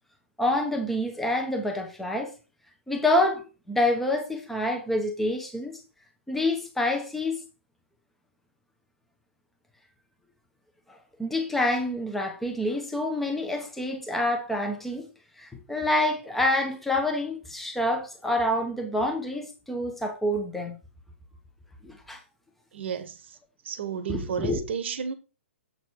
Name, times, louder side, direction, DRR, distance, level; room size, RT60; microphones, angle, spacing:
voice 1, 0.4-2.3 2.9-5.8 6.3-7.4 11.2-15.1 15.4-20.8 21.8-22.2 24.1-24.6, left 1 dB, ahead, 1.1 m, -27 dB
voice 2, 22.7-23.4 23.6-25.1, right 7 dB, 60° right, 1.2 m, -32 dB
7.7 x 4.0 x 4.6 m
hypercardioid pair, 140°, 7 cm